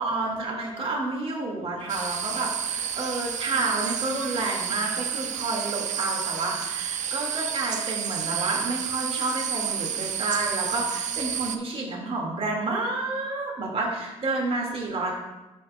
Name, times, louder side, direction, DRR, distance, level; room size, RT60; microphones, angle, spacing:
voice 1, 0.0-15.1, right 2 dB, 45° right, -1 dB, 2.0 m, -30 dB
sound 1, 1.9-11.6, right 9 dB, 65° right, 0.5 m, -30 dB
12.5 x 5.3 x 2.2 m, 1.0 s
cardioid pair, 70°, 13 cm